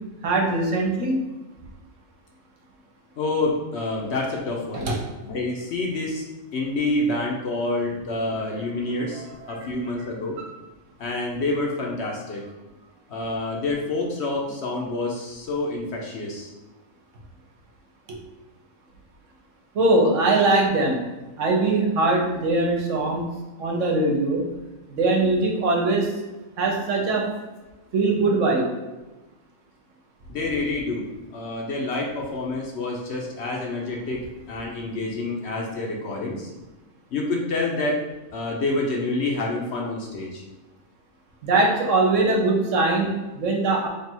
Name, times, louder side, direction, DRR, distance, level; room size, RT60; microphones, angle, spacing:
voice 1, 0.2-1.2 4.7-5.0 9.1-9.5 10.4-10.5 18.1-18.2 19.7-21.0 21.4-23.2 23.6-24.4 24.9-26.1 26.6-27.3 27.9-28.7 41.4-43.9, right 2 dB, 65° right, -1 dB, 1.1 m, -21 dB
voice 2, 3.2-4.9 5.3-6.2 6.5-10.4 11.0-12.5 12.8-16.5 30.3-31.1 31.3-36.5 37.1-38.0 38.3-40.4, left 2 dB, 60° left, -1 dB, 0.9 m, -28 dB
3.3 x 2.4 x 4.3 m, 1.1 s
omnidirectional pair, 1.4 m